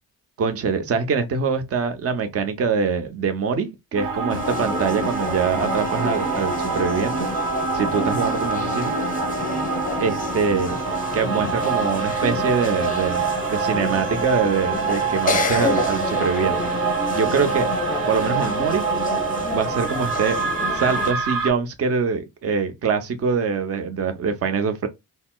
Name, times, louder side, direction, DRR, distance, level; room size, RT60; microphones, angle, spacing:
voice 1, 0.4-7.3 7.7-8.9 10.0-10.8 11.1-16.6 17.1-17.7 18.1-18.8 19.5-20.4 20.7-24.9, right 5 dB, 40° right, 0.7 m, -24 dB
sound 1, 3.9-21.5, right 5 dB, 75° right, 0.8 m, -26 dB
sound 2, 4.3-21.1, left 4 dB, 25° left, 0.6 m, -29 dB
4.1 x 2.0 x 2.2 m
cardioid pair, 100°, 35 cm